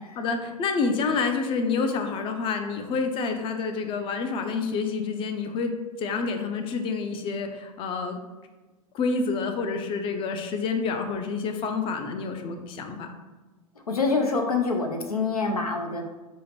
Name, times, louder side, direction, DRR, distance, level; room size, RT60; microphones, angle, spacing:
voice 1, 0.2-5.7 6.0-8.2 8.9-13.1, left 4 dB, 30° left, 6 dB, 0.5 m, -28 dB
voice 2, 13.9-16.0, left 4 dB, 90° left, 3 dB, 0.6 m, -26 dB
4.6 x 2.1 x 4.3 m, 1.2 s
figure-of-eight pair, 95°, 19 cm